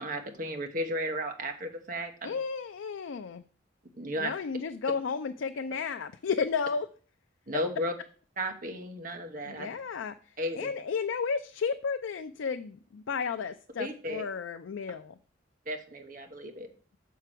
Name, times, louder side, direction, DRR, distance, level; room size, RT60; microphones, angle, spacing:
voice 1, 0.0-2.4 3.9-4.3 7.5-7.9 8.4-9.7 10.4-10.7 13.8-14.2 15.7-16.7, equal, 45° right, 5 dB, 1.1 m, -34 dB
voice 2, 2.2-3.4 4.2-6.9 9.5-10.2 10.5-15.1, left 5 dB, 80° left, 8 dB, 0.4 m, -33 dB
6.7 x 4.6 x 6.1 m, 0.42 s
head